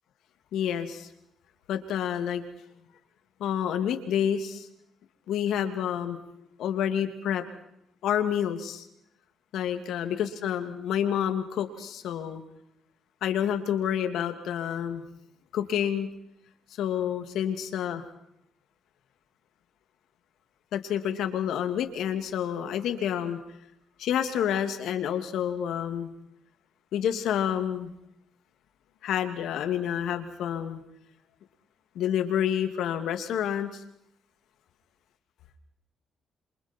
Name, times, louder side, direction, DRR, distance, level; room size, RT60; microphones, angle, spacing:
voice 1, 0.5-1.1 1.7-2.4 3.4-4.7 5.3-6.2 6.6-7.4 8.0-8.8 9.5-12.4 13.2-15.0 15.5-16.1 16.8-18.0 20.7-23.4 24.0-26.1 26.9-27.9 29.0-30.8 31.9-33.8, left 9 dB, 80° left, 7 dB, 2.6 m, -28 dB
28.0 x 27.5 x 4.6 m, 0.78 s
cardioid pair, 90°, 0 cm